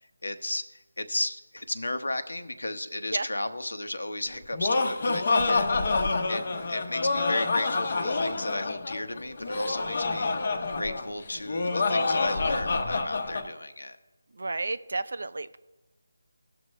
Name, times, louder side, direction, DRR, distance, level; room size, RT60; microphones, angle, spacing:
voice 1, 0.2-0.6 1.0-6.0 6.3-10.3 10.7-14.0, left 1 dB, 85° left, 9 dB, 1.0 m, -34 dB
Laughter, 4.3-13.5, left 3 dB, 45° left, 0.9 m, -27 dB
voice 2, 14.4-15.6, right 3 dB, 65° right, 13 dB, 0.6 m, -31 dB
17.5 x 6.3 x 3.2 m, 1.1 s
figure-of-eight pair, 165°, 0 cm